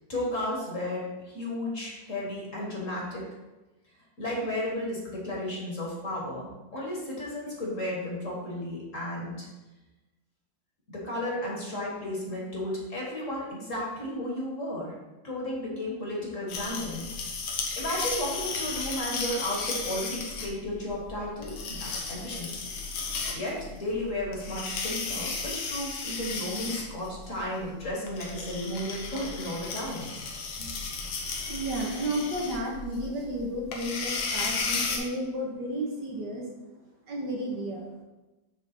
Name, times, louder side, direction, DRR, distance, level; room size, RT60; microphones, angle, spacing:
voice 1, 0.1-3.2 4.2-9.5 10.9-14.9 15.2-17.1 17.4-22.7 23.3-30.1 30.6-30.8, left 1 dB, 40° left, -3 dB, 1.7 m, -33 dB
sound 1, 16.5-35.0, left 4 dB, 90° left, 1.8 m, -35 dB
voice 2, 31.5-36.5 37.1-37.9, right 1 dB, 60° right, -1 dB, 1.5 m, -32 dB
6.6 x 3.4 x 5.9 m, 1.1 s
omnidirectional pair, 2.2 m